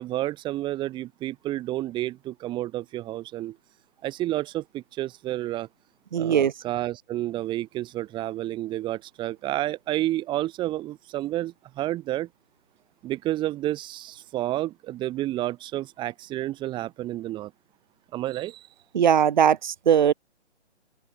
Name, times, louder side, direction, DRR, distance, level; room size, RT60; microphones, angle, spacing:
voice 1, 0.0-3.6 4.0-5.7 6.2-12.3 13.0-17.5 18.1-18.7, right 15 dB, 15° right, 4.6 m, -30 dB
voice 2, 6.1-6.5 18.9-20.1, right 8 dB, 40° right, 3.8 m, -20 dB
figure-of-eight pair, 145°, 36 cm